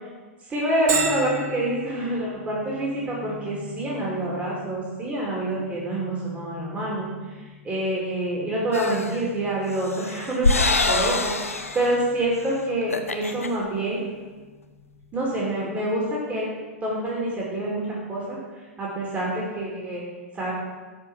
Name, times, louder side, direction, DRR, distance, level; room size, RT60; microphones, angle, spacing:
voice 1, 0.5-7.1 7.6-14.0 15.1-16.5 16.8-18.4 18.8-20.0 20.3-20.5, right 1 dB, 20° right, -5 dB, 3.0 m, -27 dB
Bell, 0.9-16.3, right 3 dB, 35° right, 1.7 m, -39 dB
sound 1, 8.7-9.2 9.7-11.9 12.3-12.5 12.8-13.5, left 3 dB, 80° left, 0.8 m, -25 dB
11.0 x 5.1 x 7.3 m, 1.3 s
figure-of-eight pair, 100°, 7 cm